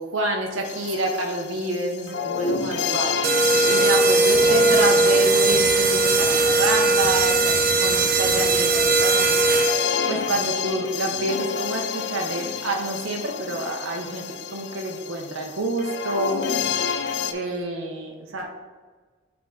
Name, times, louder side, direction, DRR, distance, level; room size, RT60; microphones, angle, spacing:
voice 1, 0.0-3.1 3.7-7.5 7.8-9.4 10.1-14.2 14.5-16.4 17.3-18.5, right 2 dB, 90° right, 1 dB, 0.8 m, -28 dB
sound 1, 0.6-17.3, left 6 dB, 55° left, 0.4 m, -30 dB
sound 2, 3.2-10.0, right 3 dB, 45° right, 0.5 m, -19 dB
7.6 x 3.5 x 3.8 m, 1.4 s
head